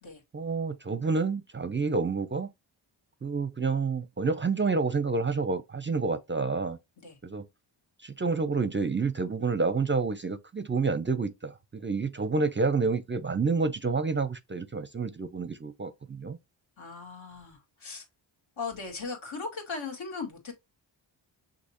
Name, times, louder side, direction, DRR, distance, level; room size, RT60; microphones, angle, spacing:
voice 1, 0.3-2.5 3.2-6.8 7.2-7.5 8.0-16.4, right 4 dB, 25° right, 0.5 m, -29 dB
voice 2, 16.8-18.0 18.6-20.5, left 4 dB, 70° left, 2.2 m, -38 dB
6.3 x 2.9 x 2.9 m
cardioid pair, 70°, 48 cm